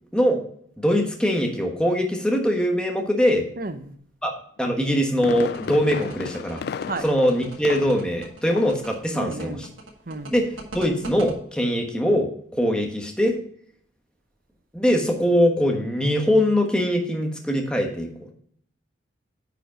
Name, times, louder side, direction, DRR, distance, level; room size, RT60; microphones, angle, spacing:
voice 1, 0.8-3.4 4.2-4.3 4.6-6.6 7.0-9.6 10.3-10.5 10.7-13.4 14.7-18.3, equal, 5° left, 1.2 m, -22 dB
voice 2, 3.6-4.0 6.9-7.1 9.1-9.7 10.1-10.4, right 3 dB, 45° right, 0.8 m, -32 dB
Fireworks, 4.7-8.2 8.5-8.9 9.2-9.3, left 6 dB, 55° left, 0.3 m, -33 dB
sound 1, 5.4-11.3, right 2 dB, 85° right, 1.6 m, -39 dB
9.2 x 5.0 x 5.1 m
head